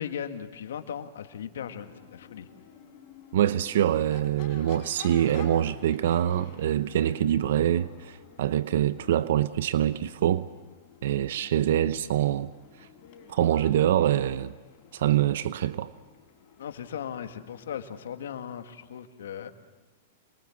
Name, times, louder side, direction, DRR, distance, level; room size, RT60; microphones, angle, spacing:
voice 1, 0.0-2.5 16.6-19.5, left 8 dB, 80° left, 1.9 m, -37 dB
Crowd / Race car auto racing / Accelerating revving vroom, 1.5-18.6, left 6 dB, 45° left, 4.7 m, -50 dB
voice 2, 3.3-10.5 11.0-12.5 13.3-14.5 14.9-15.9, right 11 dB, 70° right, 0.7 m, -25 dB
27.5 x 22.0 x 7.3 m
hypercardioid pair, 130°, 0 cm